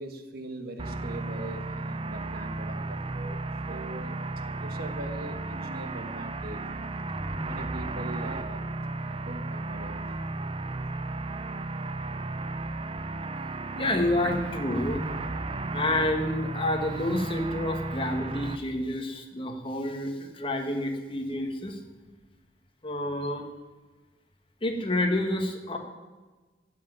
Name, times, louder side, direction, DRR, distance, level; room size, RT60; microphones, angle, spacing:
voice 1, 0.0-4.2 4.6-6.9 7.4-8.6 9.0-10.2 14.2-14.3, right 2 dB, 60° right, 7 dB, 1.4 m, -41 dB
sound 1, 0.8-18.6, right 2 dB, 30° right, 0.6 m, -34 dB
voice 2, 13.8-15.0 15.7-21.8 22.8-23.4 24.6-25.8, left 1 dB, 30° left, 4 dB, 1.7 m, -29 dB
16.0 x 6.2 x 9.1 m, 1.3 s
head